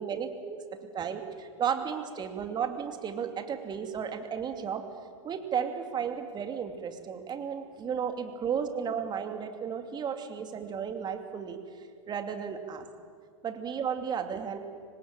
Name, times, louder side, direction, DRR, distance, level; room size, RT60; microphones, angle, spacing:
voice 1, 0.0-0.6 0.9-4.8 5.2-11.6 12.1-12.9 13.4-14.6, right 7 dB, 25° right, 6 dB, 2.6 m, -33 dB
25.5 x 19.0 x 9.0 m, 2.2 s
hypercardioid pair, 100°, 16 cm